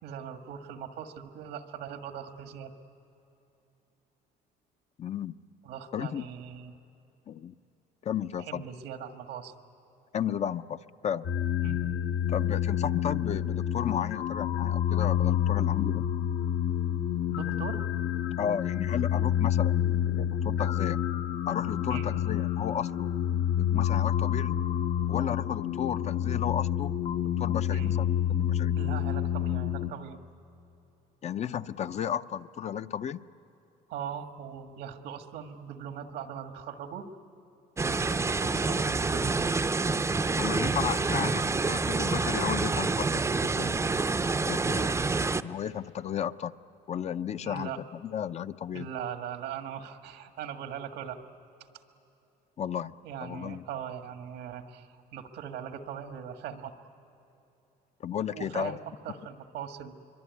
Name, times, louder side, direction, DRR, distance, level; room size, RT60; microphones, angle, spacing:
voice 1, 0.0-2.7 5.6-6.7 8.4-9.5 11.6-11.8 17.3-17.8 21.9-22.1 27.7-27.9 28.7-30.2 33.9-37.1 37.9-39.5 47.4-47.8 48.7-51.2 53.0-56.7 58.3-59.9, right 8 dB, 85° right, 6 dB, 1.8 m, -40 dB
voice 2, 5.0-5.3 5.9-6.2 7.3-7.5 8.0-8.6 10.1-11.3 12.3-16.1 18.4-21.0 21.5-23.2 23.6-24.6 25.1-26.9 27.4-28.8 31.2-33.2 40.4-43.8 44.5-45.1 45.4-46.5 46.9-48.9 52.6-53.6 58.0-58.8, left 9 dB, 40° left, 12 dB, 0.6 m, -34 dB
sound 1, 11.2-29.9, left 10 dB, 65° left, 1.1 m, -28 dB
sound 2, 37.8-45.4, right 3 dB, 15° right, 0.6 m, -27 dB
24.0 x 24.0 x 9.6 m, 2.9 s
cardioid pair, 110°, 17 cm